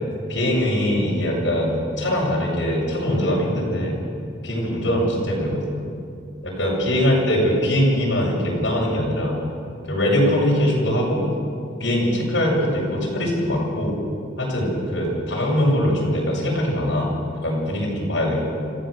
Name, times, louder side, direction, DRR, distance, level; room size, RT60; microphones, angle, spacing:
voice 1, 0.3-4.0 4.4-5.7 6.4-9.4 9.8-11.2 11.8-14.0 14.4-17.1 17.4-18.5, equal, 75° left, -4 dB, 6.4 m, -22 dB
26.5 x 15.5 x 6.6 m, 2.4 s
head